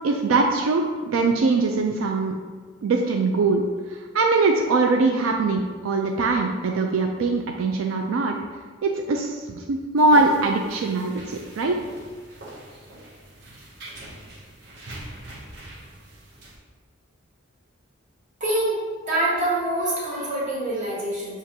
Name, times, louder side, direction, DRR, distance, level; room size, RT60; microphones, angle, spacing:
voice 1, 0.0-2.3 2.8-3.7 4.1-8.3 8.8-11.8, right 3 dB, 85° right, 2 dB, 0.3 m, -22 dB
sound 1, 10.0-16.6, right 1 dB, 55° right, 0.7 m, -42 dB
voice 2, 18.4-18.8 19.0-21.4, right 1 dB, 40° right, -7 dB, 1.3 m, -25 dB
5.9 x 2.4 x 2.8 m, 1.5 s
head